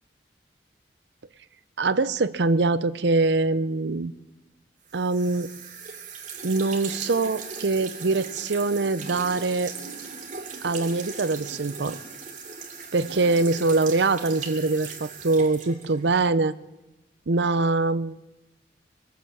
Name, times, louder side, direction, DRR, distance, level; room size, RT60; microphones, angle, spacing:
voice 1, 1.8-4.1 4.9-5.5 6.4-9.7 10.6-12.0 12.9-16.5 17.3-18.2, right 3 dB, 70° right, 15 dB, 0.7 m, -23 dB
sound 1, 4.9-16.3, right 5 dB, 45° right, 2.7 m, -38 dB
22.5 x 8.0 x 8.0 m, 1.0 s
head